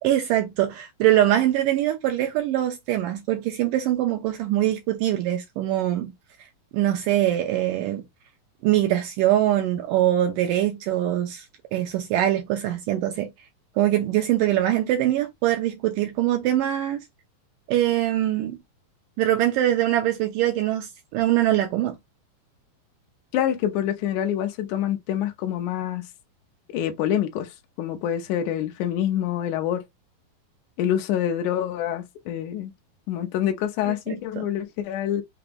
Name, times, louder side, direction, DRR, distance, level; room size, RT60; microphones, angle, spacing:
voice 1, 0.0-6.1 6.7-8.0 8.6-11.5 11.7-13.3 13.8-17.1 17.7-18.6 19.2-22.0 33.8-34.5, right 13 dB, 80° right, 2.0 m, -23 dB
voice 2, 23.3-26.0 26.7-27.5 27.8-29.8 30.8-32.7 33.1-35.2, left 10 dB, 75° left, 1.9 m, -26 dB
6.0 x 2.2 x 3.4 m
omnidirectional pair, 4.4 m